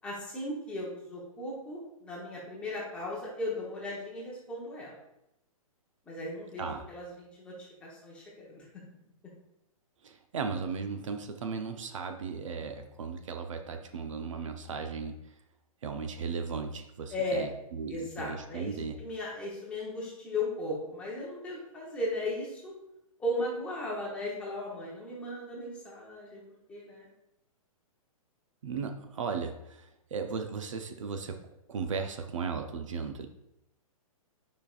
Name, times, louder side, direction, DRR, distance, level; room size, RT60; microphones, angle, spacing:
voice 1, 0.0-5.0 6.1-8.6 17.1-17.4 17.9-22.7 23.2-26.4 26.7-27.1, left 1 dB, 5° left, -5 dB, 0.9 m, -36 dB
voice 2, 10.0-15.2 15.8-19.0 28.6-31.4 31.7-33.3, right 5 dB, 60° right, 6 dB, 0.6 m, -36 dB
8.1 x 5.2 x 2.4 m, 0.84 s
hypercardioid pair, 175°, 18 cm